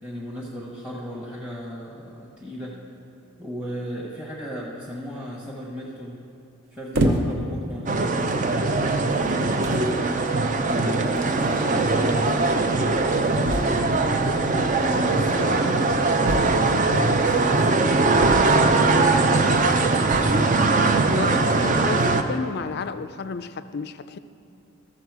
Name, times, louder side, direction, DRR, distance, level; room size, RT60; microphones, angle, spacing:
voice 1, 0.0-2.8 3.4-6.2 6.7-8.2 8.5-10.0 10.6-12.9 13.5-20.0, equal, 5° right, -5 dB, 1.0 m, -36 dB
sound 1, 6.9-7.5 8.3-8.5 9.3-9.4 9.6-9.9 11.2-11.3 11.5-11.6 11.8-11.9 13.4-14.0 16.2-16.9 18.2-18.8 20.0-20.5, right 1 dB, 60° right, 0.8 m, -26 dB
sound 2, 7.9-22.2, right 3 dB, 35° right, 0.5 m, -21 dB
voice 2, 21.1-24.2, left 4 dB, 45° left, 12 dB, 0.4 m, -31 dB
13.5 x 7.1 x 4.7 m, 2.4 s
head